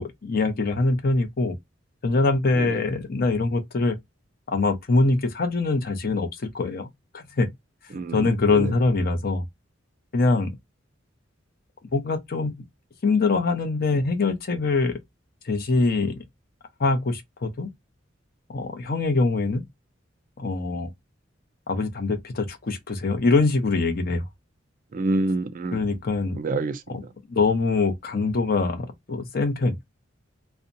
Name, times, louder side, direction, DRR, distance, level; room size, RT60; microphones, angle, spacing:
voice 1, 0.0-1.6 2.0-4.0 4.5-6.9 7.1-7.5 8.1-9.4 10.1-10.5 11.9-12.6 13.0-15.0 15.4-16.2 16.8-17.7 18.5-19.6 20.4-20.9 21.7-24.3 25.7-26.4 26.9-27.0 27.3-29.8, left 3 dB, 50° left, 0.6 m, -23 dB
voice 2, 7.9-8.7 24.9-26.0 26.4-27.1, right 2 dB, 45° right, 0.4 m, -28 dB
2.7 x 2.1 x 2.5 m
head